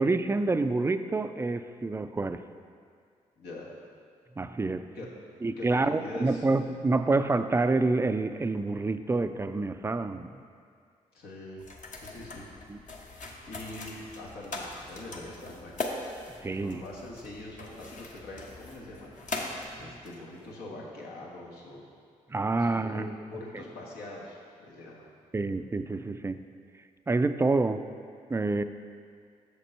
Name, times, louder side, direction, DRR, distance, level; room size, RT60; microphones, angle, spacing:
voice 1, 0.0-2.4 4.4-4.9 5.4-10.4 12.7-12.8 16.4-16.8 22.3-23.1 25.3-26.4 27.1-27.8 28.3-28.6, right 3 dB, 15° right, 11 dB, 0.3 m, -27 dB
voice 2, 3.4-3.7 4.9-5.1 5.6-6.4 11.1-11.6 12.0-12.5 13.5-15.8 16.6-19.1 19.8-21.8 22.5-25.1, left 2 dB, 80° left, -4 dB, 1.2 m, -43 dB
sound 1, 11.6-20.5, left 2 dB, 50° left, 0.9 m, -41 dB
6.6 x 5.2 x 4.4 m, 2.2 s
hypercardioid pair, 45°, 16 cm